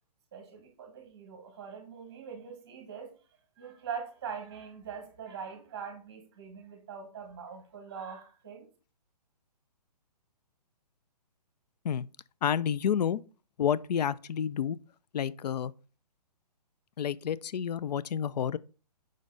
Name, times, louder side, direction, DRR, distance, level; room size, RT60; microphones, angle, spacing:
voice 1, 0.3-3.1 3.6-8.7, right 6 dB, 10° right, 1.1 m, -42 dB
voice 2, 12.4-13.2 13.6-14.8 15.1-15.7 17.0-18.6, left 8 dB, 75° left, 0.4 m, -29 dB
5.5 x 5.1 x 3.9 m
hypercardioid pair, 180°, 21 cm